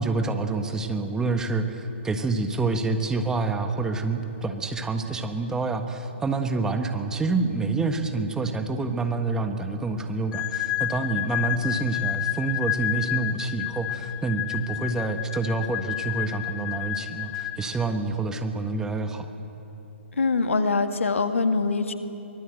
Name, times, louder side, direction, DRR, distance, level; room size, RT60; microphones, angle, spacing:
voice 1, 0.0-19.3, right 3 dB, 10° right, 6 dB, 1.4 m, -27 dB
sound 1, 10.3-18.0, left 14 dB, 20° left, 0.9 m, -30 dB
voice 2, 20.2-21.9, left 4 dB, 70° left, 8 dB, 1.7 m, -23 dB
23.5 x 20.5 x 7.9 m, 2.9 s
figure-of-eight pair, 130°, 7 cm